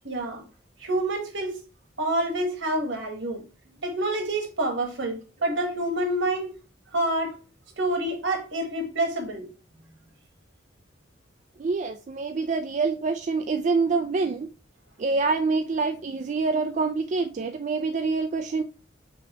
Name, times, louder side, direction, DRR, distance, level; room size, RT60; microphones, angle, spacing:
voice 1, 0.0-0.4 0.8-1.6 2.0-3.4 3.8-6.5 6.9-7.4 7.8-9.5, right 1 dB, 70° right, 1.5 m, -27 dB
voice 2, 11.6-14.5 15.0-18.6, right 4 dB, 40° right, 0.3 m, -26 dB
6.1 x 2.9 x 3.0 m
head